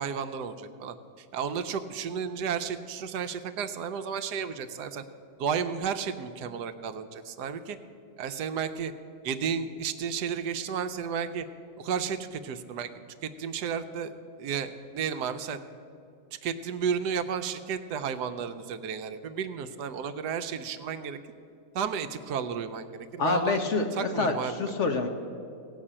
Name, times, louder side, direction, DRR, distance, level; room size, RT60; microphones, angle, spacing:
voice 1, 0.0-5.0 5.4-7.8 8.2-8.9 9.2-11.5 11.8-12.9 13.2-14.1 14.4-15.6 16.4-21.2 21.7-23.6 23.9-24.7, right 7 dB, 80° right, 9 dB, 1.2 m, -32 dB
voice 2, 23.2-25.1, left 4 dB, 55° left, 5 dB, 1.0 m, -27 dB
17.0 x 5.7 x 8.7 m, 2.5 s
omnidirectional pair, 1.8 m